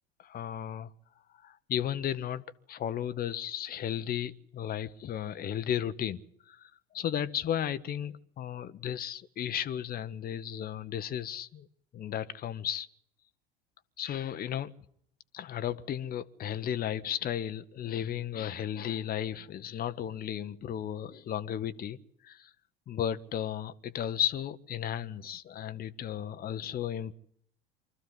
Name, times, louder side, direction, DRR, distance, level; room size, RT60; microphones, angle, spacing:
voice 1, 0.2-0.9 1.4-2.4 2.7-11.7 11.9-12.9 14.0-14.7 15.3-22.0 22.2-22.5 22.9-27.1, left 10 dB, 30° left, 1.0 m, -34 dB
24.5 x 14.0 x 9.8 m
figure-of-eight pair, 70°, 30 cm